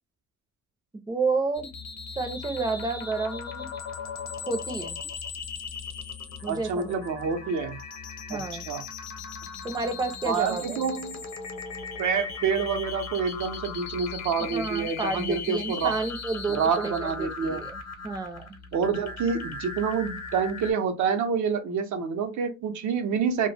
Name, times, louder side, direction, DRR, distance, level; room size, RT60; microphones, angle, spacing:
voice 1, 0.9-1.7 2.2-3.7 4.5-5.0 6.4-6.9 8.3-8.7 9.6-10.8 14.4-18.5, right 3 dB, 15° right, 0.5 m, -30 dB
sound 1, 1.5-20.7, left 5 dB, 60° left, 0.8 m, -38 dB
voice 2, 6.5-7.8 8.3-8.8 10.3-11.2 12.0-16.0 16.5-17.6 18.7-23.5, right 6 dB, 75° right, 0.6 m, -27 dB
2.2 x 2.1 x 3.2 m
cardioid pair, 90°, 30 cm